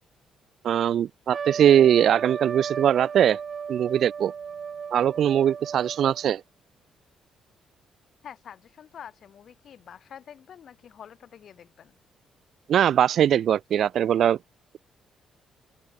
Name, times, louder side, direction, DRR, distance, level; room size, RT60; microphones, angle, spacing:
voice 1, 0.6-3.4 3.7-4.3 4.9-6.4 12.7-14.4, right 10 dB, 65° right, 0.3 m, -21 dB
Trumpet, 1.3-6.3, right 6 dB, 45° right, 2.1 m, -35 dB
voice 2, 8.2-11.9, left 8 dB, 60° left, 7.8 m, -46 dB
cardioid pair, 90°, 0 cm